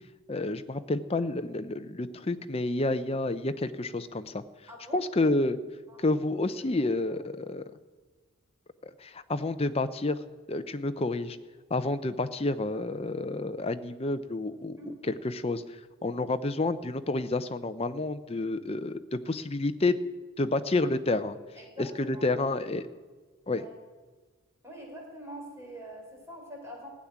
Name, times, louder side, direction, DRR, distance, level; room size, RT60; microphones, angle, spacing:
voice 1, 0.3-4.4 4.9-5.6 6.0-7.6 8.8-10.2 10.5-11.4 11.7-15.6 16.0-20.0 20.4-21.4 21.8-22.9 23.5-23.6, left 2 dB, 25° left, 10 dB, 0.6 m, -29 dB
voice 2, 4.7-5.4 5.9-6.1 6.5-6.6 7.1-7.2 14.8-15.0 21.6-22.5 23.5-23.7 24.6-26.9, equal, 10° right, 0 dB, 3.7 m, -45 dB
15.5 x 7.3 x 10.0 m, 1.3 s
head